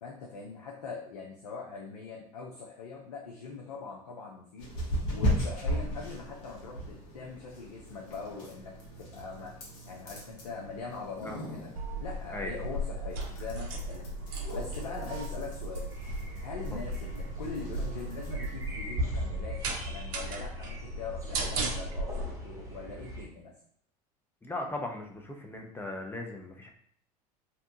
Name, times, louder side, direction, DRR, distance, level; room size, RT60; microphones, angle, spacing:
voice 1, 0.0-9.5 9.9-11.7 12.0-14.1 14.5-15.9 16.4-23.5, left 4 dB, 85° left, -1 dB, 0.5 m, -42 dB
sound 1, 4.6-18.7, equal, 65° left, 1.0 m, -38 dB
sound 2, 11.8-22.3, right 2 dB, 70° right, 0.5 m, -36 dB
sound 3, 15.9-23.3, equal, 15° right, 0.9 m, -41 dB
voice 2, 24.4-26.7, left 2 dB, 10° left, 1 dB, 0.5 m, -38 dB
2.7 x 2.2 x 2.6 m, 0.62 s
hypercardioid pair, 80°, 20 cm